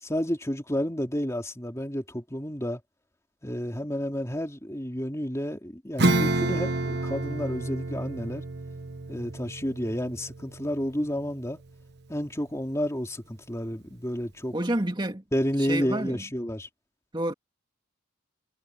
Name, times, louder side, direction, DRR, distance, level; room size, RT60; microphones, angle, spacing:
voice 1, 0.0-2.8 3.4-8.4 9.1-11.6 12.1-14.5 15.3-16.7, equal, 15° left, 2.9 m, -30 dB
Acoustic guitar / Strum, 6.0-12.0, right 2 dB, 50° right, 1.4 m, -29 dB
voice 2, 14.5-15.2 15.7-16.2 17.1-17.3, right 1 dB, 20° right, 2.0 m, -28 dB
head